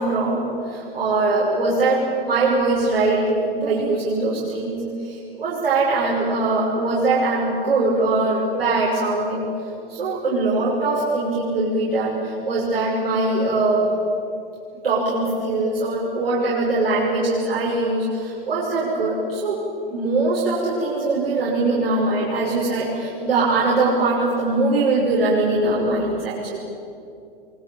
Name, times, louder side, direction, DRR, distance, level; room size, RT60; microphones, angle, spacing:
voice 1, 0.0-9.5 9.9-13.9 14.8-19.6 19.9-26.6, right 2 dB, 75° right, -6 dB, 6.4 m, -22 dB
24.0 x 23.5 x 8.8 m, 2.6 s
hypercardioid pair, 100°, 29 cm